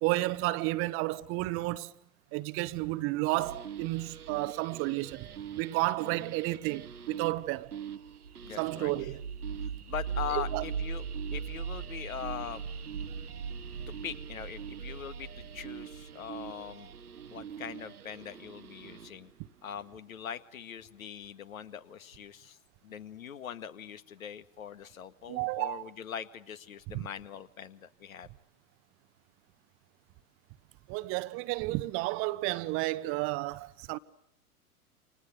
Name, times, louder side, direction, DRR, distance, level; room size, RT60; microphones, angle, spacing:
voice 1, 0.0-1.9 2.3-5.3 5.6-7.7 8.6-9.2 10.3-10.6 25.3-25.8 26.9-27.1 30.9-34.0, right 19 dB, 30° right, 1.0 m, -32 dB
sound 1, 3.3-19.3, right 7 dB, 70° right, 1.2 m, -40 dB
voice 2, 8.4-9.1 9.9-11.0 11.3-12.6 14.0-16.9 17.3-19.3 19.6-22.6 22.8-28.3, left 8 dB, 60° left, 2.0 m, -41 dB
29.5 x 27.5 x 6.7 m
figure-of-eight pair, 100°, 46 cm